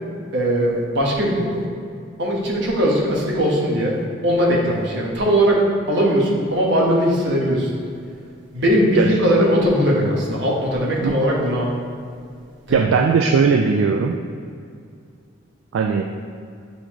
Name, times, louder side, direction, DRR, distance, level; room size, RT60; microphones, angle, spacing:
voice 1, 0.3-1.6 2.2-4.0 4.2-5.6 5.9-7.7 8.5-11.7 12.7-12.8, equal, 60° right, -4 dB, 1.2 m, -19 dB
voice 2, 12.7-14.2 15.7-16.0, right 5 dB, 75° right, 3 dB, 0.3 m, -18 dB
8.3 x 4.0 x 3.0 m, 2.3 s
head